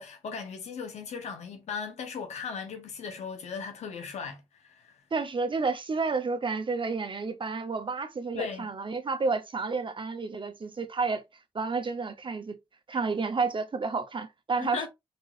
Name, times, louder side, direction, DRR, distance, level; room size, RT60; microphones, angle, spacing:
voice 1, 0.0-5.0 8.3-8.7 12.9-13.0 14.6-14.9, left 5 dB, 85° left, 1.0 m, -37 dB
voice 2, 5.1-11.2 11.5-12.6 12.9-14.9, right 4 dB, 45° right, 1.0 m, -30 dB
3.9 x 3.8 x 2.5 m
supercardioid pair, 40°, 11 cm